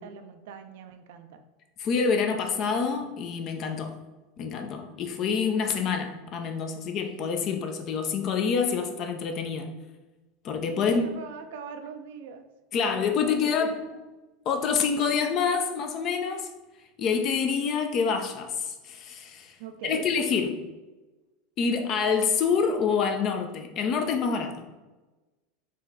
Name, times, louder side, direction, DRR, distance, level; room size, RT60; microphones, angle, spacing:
voice 1, 0.0-1.4 10.8-12.5 12.7-13.5 19.6-20.1, right 6 dB, 60° right, 7 dB, 0.4 m, -41 dB
voice 2, 1.8-4.0 4.4-9.7 10.4-11.1 12.7-13.7 14.5-16.5 17.0-19.5 19.8-20.6 21.6-24.7, left 6 dB, 45° left, 5 dB, 0.6 m, -27 dB
4.2 x 3.1 x 3.7 m, 1.1 s
figure-of-eight pair, 80°, 0 cm